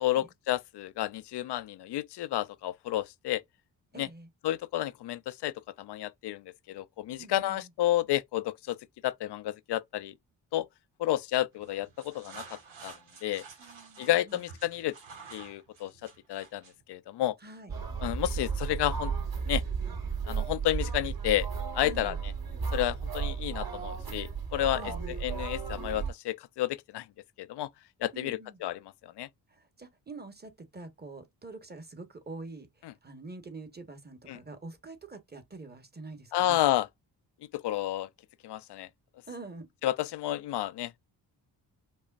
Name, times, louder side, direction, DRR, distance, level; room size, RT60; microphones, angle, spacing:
voice 1, 0.0-3.4 4.0-4.1 4.4-8.8 9.0-10.1 10.5-10.7 11.0-12.9 13.2-13.4 14.0-14.9 15.3-16.6 16.9-17.4 18.0-19.1 19.5-19.6 20.3-21.5 21.7-22.1 22.7-24.8 25.1-27.1 27.4-27.7 28.0-29.3 32.8-32.9 34.3-34.4 36.3-36.9 37.6-38.1 38.4-38.9 39.8-40.9, left 14 dB, 65° left, 0.5 m, -31 dB
voice 2, 3.9-4.3 7.1-7.7 13.6-14.4 17.4-17.7 21.8-22.2 24.7-25.2 28.1-28.6 29.5-36.6 39.3-39.7, right 3 dB, 20° right, 1.3 m, -46 dB
sound 1, 11.5-16.8, right 5 dB, 80° right, 1.6 m, -50 dB
sound 2, 17.7-26.1, right 6 dB, 50° right, 2.5 m, -34 dB
5.3 x 2.3 x 2.4 m
supercardioid pair, 50°, 45 cm